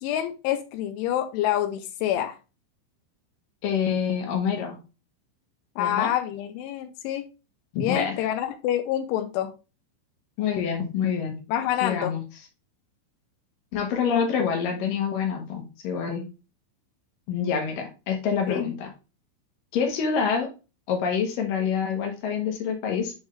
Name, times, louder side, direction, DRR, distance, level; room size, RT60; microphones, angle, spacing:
voice 1, 0.0-2.4 5.8-7.2 7.8-9.5 11.5-12.1 18.5-18.6, left 11 dB, 85° left, 2.9 m, -27 dB
voice 2, 3.6-4.8 5.8-6.1 7.7-8.3 10.4-11.4 11.8-12.2 13.7-16.3 17.3-18.9 19.7-20.5 20.9-23.1, left 7 dB, 65° left, 2.3 m, -26 dB
10.5 x 3.6 x 3.3 m
omnidirectional pair, 5.8 m